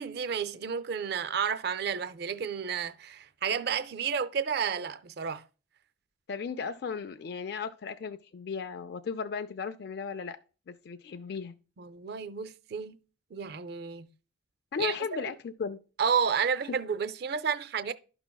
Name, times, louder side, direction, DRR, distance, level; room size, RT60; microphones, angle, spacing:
voice 1, 0.0-5.4 11.8-13.0 13.3-14.1 14.8-15.2 16.0-17.9, right 6 dB, 55° right, 0.4 m, -31 dB
voice 2, 6.3-10.4 10.7-11.6 14.7-15.8 16.4-16.5, left 6 dB, 55° left, 0.4 m, -36 dB
12.0 x 5.8 x 2.2 m
head